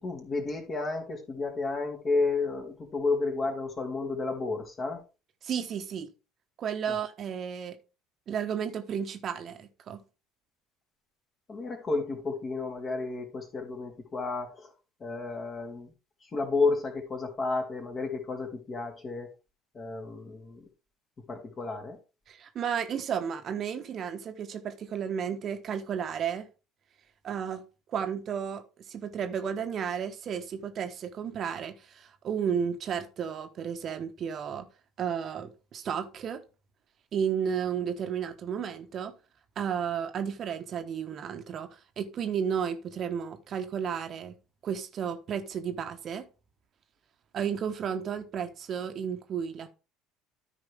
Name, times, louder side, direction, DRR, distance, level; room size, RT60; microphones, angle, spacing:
voice 1, 0.0-5.0 6.9-7.0 11.5-14.7 15.0-15.9 16.3-19.3 19.7-20.6 21.3-22.0, left 3 dB, 35° left, 2.9 m, -31 dB
voice 2, 5.4-6.1 6.6-7.8 8.3-10.0 22.3-26.5 27.2-27.6 27.9-28.6 28.9-34.7 35.0-36.4 37.1-39.1 39.6-44.4 44.6-46.2 47.3-49.7, right 7 dB, 45° right, 1.2 m, -33 dB
13.5 x 4.9 x 3.5 m
hypercardioid pair, 60°, 0 cm